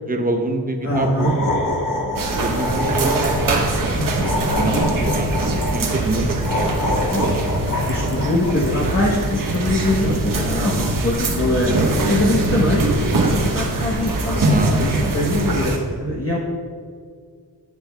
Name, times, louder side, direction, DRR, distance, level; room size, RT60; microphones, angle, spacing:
voice 1, 0.1-1.3 2.0-4.1 4.5-4.7 5.0-6.7 7.7-7.9 14.5-15.5, right 2 dB, 20° right, 4 dB, 0.8 m, -26 dB
sound 1, 0.8-3.6 4.2-5.8 6.4-8.7, left 2 dB, 55° left, 1.3 m, -26 dB
voice 2, 0.8-1.3 4.7-5.0 5.5-5.6 7.1-16.4, left 1 dB, 35° left, -5 dB, 1.0 m, -23 dB
sound 2, 2.2-15.8, right 2 dB, 55° right, 1.1 m, -22 dB
10.5 x 7.6 x 2.3 m, 2.2 s
wide cardioid pair, 115°, 39 cm